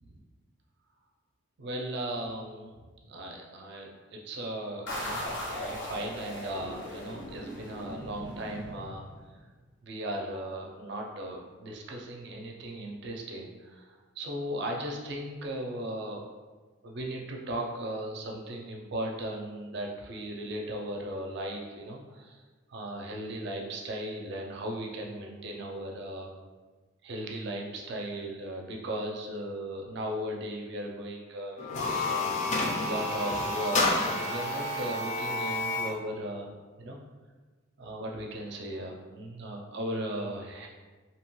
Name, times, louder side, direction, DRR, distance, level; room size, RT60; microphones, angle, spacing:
voice 1, 1.6-9.1 9.8-16.2 16.8-22.4 22.7-26.3 27.0-32.3 32.8-36.5 36.8-37.0 37.8-40.7, right 1 dB, 55° right, 0 dB, 0.4 m, -37 dB
sound 1, 4.9-9.4, equal, 65° left, 0.7 m, -38 dB
sound 2, 31.6-36.0, left 2 dB, 35° left, 0.4 m, -29 dB
2.7 x 2.2 x 3.0 m, 1.3 s
head